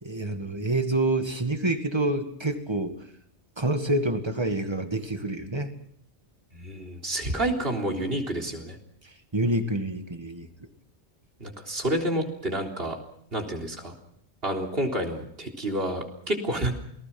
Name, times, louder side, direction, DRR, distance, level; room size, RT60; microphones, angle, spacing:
voice 1, 0.0-3.0 3.6-5.7 9.0-10.5, right 1 dB, 25° right, 7 dB, 2.1 m, -27 dB
voice 2, 6.5-8.8 11.4-13.0 13.3-13.9 14.4-16.7, right 1 dB, 60° right, 2 dB, 3.9 m, -29 dB
28.5 x 19.5 x 6.1 m, 0.72 s
omnidirectional pair, 1.1 m